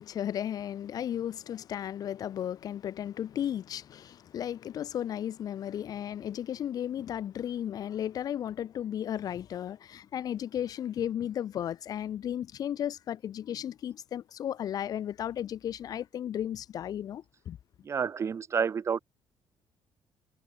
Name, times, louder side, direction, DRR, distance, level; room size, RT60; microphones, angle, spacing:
voice 1, 0.0-17.6, left 10 dB, 55° left, 0.5 m, -34 dB
voice 2, 17.8-19.0, right 6 dB, 35° right, 0.8 m, -29 dB
cardioid pair, 115°, 8 cm